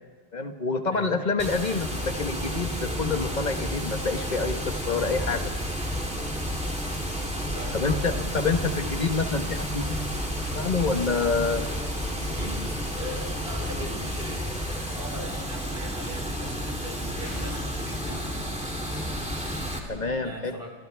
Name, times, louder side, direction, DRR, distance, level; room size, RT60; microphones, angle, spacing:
voice 1, 0.3-5.5 7.7-10.0 10.5-11.6 19.9-20.5, left 4 dB, 40° left, 6 dB, 1.4 m, -27 dB
Water, 1.4-19.8, equal, 5° right, 2.7 m, -32 dB
sound 1, 1.9-20.1, equal, 75° left, 6.0 m, -39 dB
voice 2, 7.5-8.2 12.1-14.5 14.8-18.5 20.2-20.7, equal, 45° right, 0 dB, 4.6 m, -40 dB
30.0 x 27.5 x 3.5 m, 1.5 s
omnidirectional pair, 1.2 m